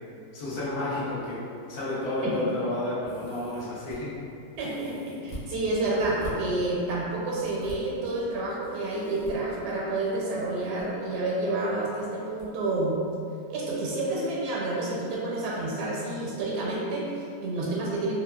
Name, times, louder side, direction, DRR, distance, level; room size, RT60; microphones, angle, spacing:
voice 1, 0.3-1.4 1.7-4.1, left 1 dB, 65° left, -9 dB, 1.3 m, -31 dB
sound 1, 3.0-4.0 4.5-5.5 6.0-6.3 7.4-7.8 8.6-9.3 10.4-10.8 11.1-11.2 12.4-12.5 12.9-13.0, right 1 dB, 90° left, 1.4 m, -44 dB
voice 2, 4.6-13.0 13.5-18.2, right 2 dB, 80° right, -5 dB, 1.1 m, -29 dB
3.4 x 2.1 x 2.2 m, 2.4 s
omnidirectional pair, 1.8 m